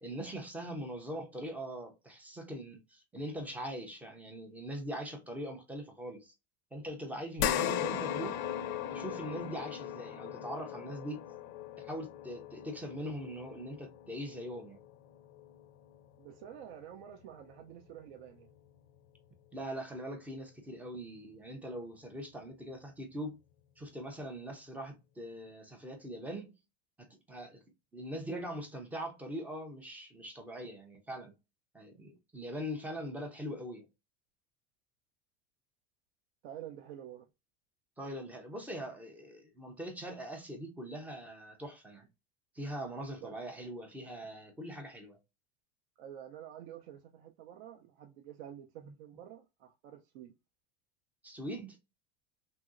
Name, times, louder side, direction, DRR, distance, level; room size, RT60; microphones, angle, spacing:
voice 1, 0.0-6.3 6.7-8.4 8.9-11.2 11.8-14.8 19.5-23.4 23.8-26.5 27.0-27.6 27.9-31.3 31.7-33.9 38.0-42.1 42.5-45.2 51.2-51.8, equal, 5° right, 0.3 m, -42 dB
sound 1, 7.4-16.0 16.4-16.5 18.0-18.1, left 10 dB, 55° left, 0.4 m, -38 dB
voice 2, 16.2-18.5 36.4-37.3 43.2-43.3 46.0-50.3, right 10 dB, 65° right, 0.5 m, -49 dB
3.0 x 2.6 x 2.4 m
supercardioid pair, 145°, 32 cm